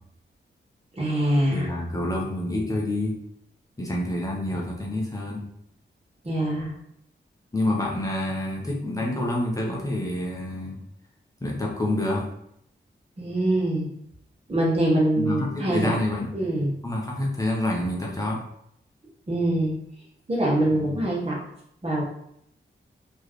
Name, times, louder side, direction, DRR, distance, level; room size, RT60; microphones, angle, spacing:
voice 1, 0.9-1.7 6.2-6.7 13.2-13.9 14.5-16.7 19.3-19.7 20.3-21.4 21.8-22.1, right 1 dB, 30° right, -5 dB, 1.5 m, -24 dB
voice 2, 1.5-3.2 3.8-5.5 7.5-10.8 11.4-12.2 15.2-16.5 16.8-18.4 20.7-20.9, left 1 dB, 15° left, -3 dB, 0.9 m, -27 dB
4.5 x 3.1 x 3.1 m, 0.73 s
wide cardioid pair, 110°, 20 cm